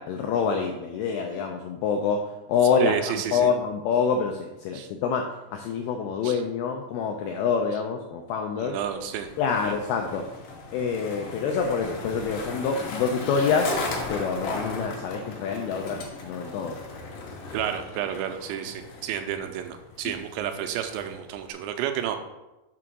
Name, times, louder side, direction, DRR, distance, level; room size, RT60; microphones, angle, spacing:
voice 1, 0.0-2.2 2.5-5.3 5.5-8.8 9.4-10.2 10.7-13.8 14.1-16.8, left 6 dB, 85° left, 3 dB, 2.2 m, -26 dB
voice 2, 2.8-3.5 4.7-4.9 6.2-6.4 8.6-9.3 9.6-9.7 17.5-22.2, right 9 dB, 85° right, 7 dB, 2.8 m, -31 dB
Skateboard, 8.8-21.5, left 3 dB, 70° left, 2.1 m, -37 dB
6.7 x 3.7 x 6.1 m, 1.0 s
omnidirectional pair, 5.1 m